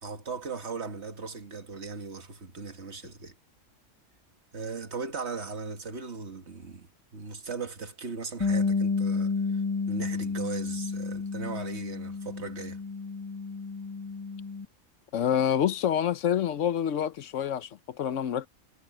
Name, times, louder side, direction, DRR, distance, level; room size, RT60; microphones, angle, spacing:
voice 1, 0.0-3.3 4.5-9.6 9.9-12.8, right 4 dB, 60° right, 2.0 m, -38 dB
Bass guitar, 8.4-14.7, left 4 dB, 20° left, 1.2 m, -31 dB
voice 2, 15.1-18.5, left 9 dB, 80° left, 1.1 m, -27 dB
omnidirectional pair, 1.3 m